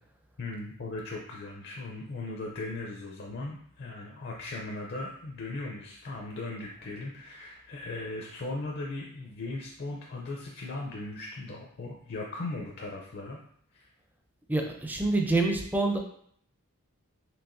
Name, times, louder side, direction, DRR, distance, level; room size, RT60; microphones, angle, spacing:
voice 1, 0.4-13.4 13.7-13.9, left 2 dB, 50° left, -1 dB, 0.5 m, -38 dB
voice 2, 14.5-16.0, right 2 dB, 10° right, 2 dB, 0.4 m, -26 dB
4.6 x 3.2 x 2.6 m, 0.65 s
head